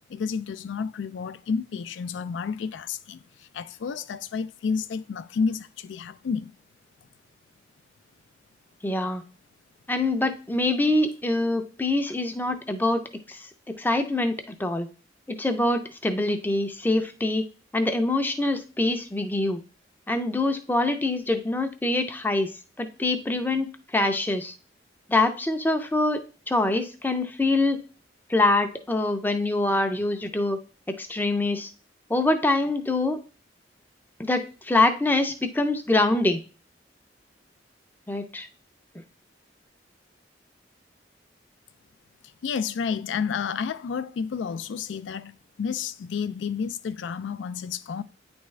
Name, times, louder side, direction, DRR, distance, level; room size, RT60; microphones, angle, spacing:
voice 1, 0.1-6.5 42.4-48.0, left 6 dB, 85° left, 0.3 m, -30 dB
voice 2, 8.8-9.2 9.9-13.0 13.3-14.9 15.3-17.4 17.7-19.6 20.1-22.5 22.8-24.5 25.1-26.2 26.5-27.8 28.3-30.6 30.9-31.7 32.1-33.2 34.2-36.4 38.1-38.5, left 2 dB, 10° left, 0.4 m, -24 dB
9.1 x 3.5 x 3.2 m
head